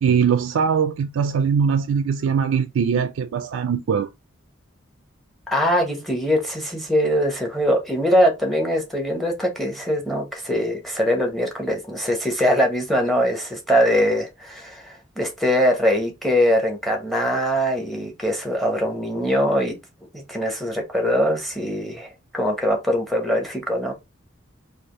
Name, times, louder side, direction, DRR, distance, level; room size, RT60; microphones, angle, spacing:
voice 1, 0.0-4.1, right 6 dB, 80° right, 0.3 m, -21 dB
voice 2, 5.5-19.7 20.1-23.9, equal, ahead, 0.8 m, -22 dB
3.3 x 2.4 x 3.6 m
head